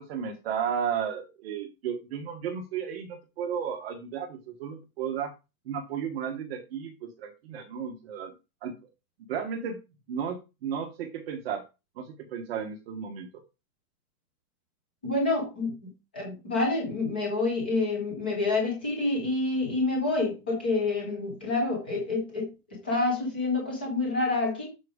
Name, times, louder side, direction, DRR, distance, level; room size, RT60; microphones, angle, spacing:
voice 1, 0.0-5.3 5.7-8.3 8.6-8.7 9.3-9.8 10.1-11.6 12.0-13.4, right 7 dB, 40° right, 1.2 m, -34 dB
voice 2, 15.0-15.7 16.1-24.7, left 3 dB, 10° left, 0.4 m, -28 dB
7.7 x 4.7 x 5.0 m
supercardioid pair, 175°, 45 cm